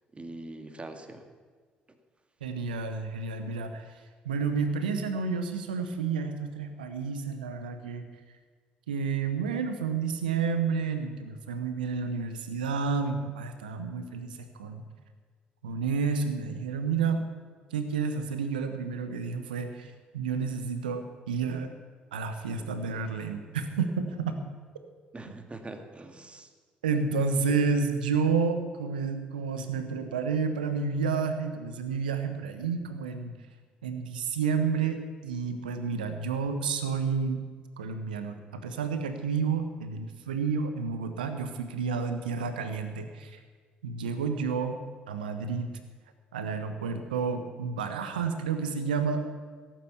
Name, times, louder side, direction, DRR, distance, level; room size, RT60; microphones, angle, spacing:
voice 1, 0.1-1.3 25.1-26.5, right 2 dB, 25° right, 7 dB, 1.9 m, -43 dB
voice 2, 2.4-3.9 4.2-8.1 8.9-14.8 15.6-17.3 17.7-21.7 22.1-24.4 26.8-33.3 33.8-37.4 37.8-43.4 43.8-44.8 45.1-45.7 46.3-49.2, right 5 dB, 80° right, 8 dB, 1.1 m, -30 dB
17.0 x 9.0 x 7.1 m, 1.5 s
figure-of-eight pair, 50°, 5 cm